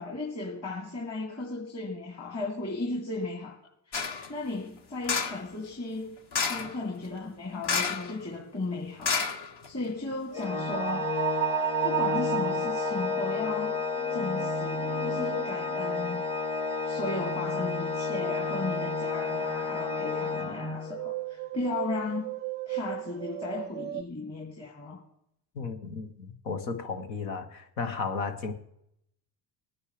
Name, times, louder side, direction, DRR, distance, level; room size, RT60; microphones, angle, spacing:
voice 1, 0.0-3.6 3.9-6.2 6.5-11.1 11.8-13.8 14.1-16.2 16.8-22.4 22.7-25.0, left 3 dB, 30° left, 2.8 m, -35 dB
sound 1, 3.9-4.3 5.0-5.5 6.3-6.8 7.6-8.1 8.4-8.5 9.0-9.9 10.4-10.5, left 5 dB, 50° left, 1.4 m, -29 dB
Organ, 10.3-21.1, left 4 dB, 10° left, 0.8 m, -31 dB
sound 2, 10.7-16.4 20.9-24.0, right 14 dB, 25° right, 0.4 m, -35 dB
voice 2, 25.5-28.5, left 4 dB, 85° left, 1.5 m, -34 dB
19.5 x 9.7 x 3.4 m
hypercardioid pair, 70°, 49 cm